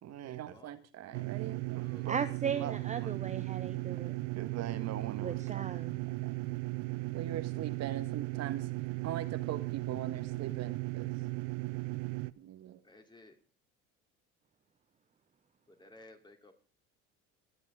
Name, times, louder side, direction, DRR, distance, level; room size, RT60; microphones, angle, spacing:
voice 1, 0.0-2.1 2.5-3.1 4.4-5.8 6.1-6.4 7.1-8.7 9.0-11.1 12.4-12.8, right 11 dB, 60° right, 10 dB, 1.7 m, -41 dB
voice 2, 1.1-2.1 12.8-13.4 15.7-16.5, left 2 dB, 15° left, 4 dB, 3.0 m, -57 dB
sound 1, 1.1-12.3, right 23 dB, 75° right, 0.6 m, -36 dB
voice 3, 2.1-4.2 5.2-6.0, right 7 dB, 25° right, 10 dB, 0.7 m, -36 dB
24.0 x 8.2 x 3.7 m, 0.36 s
supercardioid pair, 85°, 30 cm